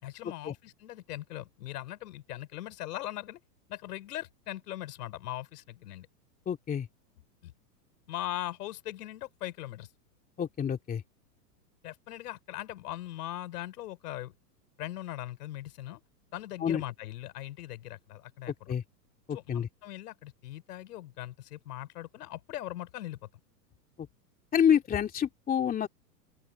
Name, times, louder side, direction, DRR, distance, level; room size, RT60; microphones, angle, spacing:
voice 1, 0.0-3.4 3.7-6.1 7.4-7.5 8.1-9.9 11.8-14.3 14.8-16.0 16.3-18.8 19.3-23.2, left 14 dB, 65° left, 5.2 m, -40 dB
voice 2, 6.5-6.9 10.4-11.0 16.6-16.8 18.7-18.8 19.3-19.7 24.5-25.9, left 8 dB, 15° left, 2.8 m, -27 dB
open air
hypercardioid pair, 140°, 50 cm